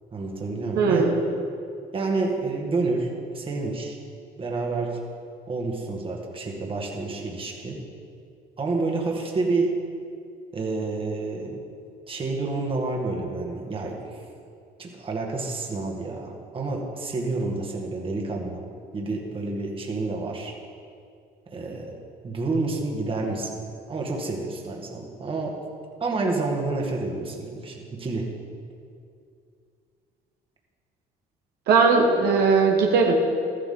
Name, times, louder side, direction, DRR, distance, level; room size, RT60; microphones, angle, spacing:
voice 1, 0.1-1.1 1.9-4.0 4.4-5.0 5.5-7.8 8.6-9.7 10.5-11.6 12.1-14.2 14.8-18.6 18.9-20.5 21.5-21.9 22.2-23.6 23.9-25.6 26.0-28.3, right 3 dB, 30° right, 0 dB, 1.9 m, -29 dB
voice 2, 0.8-1.2 31.7-33.1, right 4 dB, 75° right, 0 dB, 1.4 m, -19 dB
13.5 x 12.0 x 3.8 m, 2.4 s
cardioid pair, 110°, 17 cm